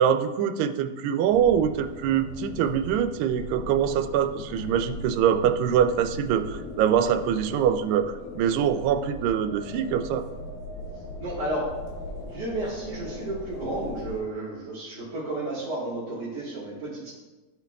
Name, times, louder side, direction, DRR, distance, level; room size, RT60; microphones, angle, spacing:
voice 1, 0.0-10.3, right 9 dB, 85° right, 8 dB, 2.2 m, -24 dB
sound 1, 1.3-14.2, left 1 dB, 80° left, 2.9 m, -39 dB
voice 2, 11.2-11.7 12.2-17.1, right 2 dB, 40° right, -10 dB, 1.6 m, -32 dB
13.5 x 4.5 x 2.3 m, 1.2 s
omnidirectional pair, 3.8 m